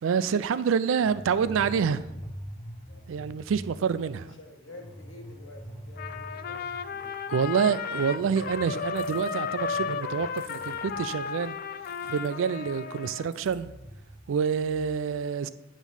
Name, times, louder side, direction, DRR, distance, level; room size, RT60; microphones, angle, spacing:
voice 1, 0.0-2.1 3.1-4.4 7.3-11.6 12.0-13.7 14.3-15.5, right 6 dB, 90° right, 0.4 m, -27 dB
sound 1, 1.0-7.5 7.8-7.9 8.2-12.8 13.3-14.9, equal, 30° left, 1.6 m, -45 dB
voice 2, 2.9-3.3 4.4-7.1, left 2 dB, 80° left, 1.3 m, -49 dB
Trumpet, 6.0-13.3, left 6 dB, 50° left, 0.3 m, -34 dB
sound 2, 9.0-9.3 10.4-10.7 11.8-12.3 13.3-13.5, equal, 5° left, 1.7 m, -52 dB
8.9 x 3.0 x 5.6 m
head